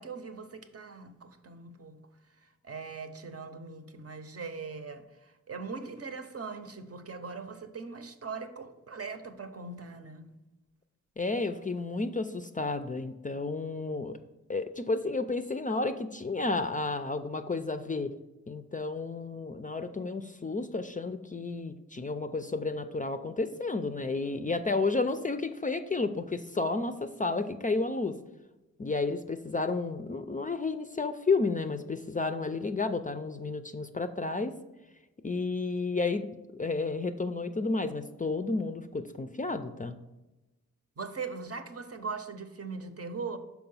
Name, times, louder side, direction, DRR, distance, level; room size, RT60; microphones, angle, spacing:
voice 1, 0.0-2.0 2.6-5.1 5.5-10.3 41.0-43.4, right 4 dB, 50° right, 0.7 m, -40 dB
voice 2, 11.2-14.2 14.5-18.1 18.5-28.1 28.8-34.5 35.2-36.3 36.5-40.0, left 3 dB, 25° left, 0.4 m, -31 dB
5.8 x 4.7 x 5.4 m
wide cardioid pair, 80°, 30 cm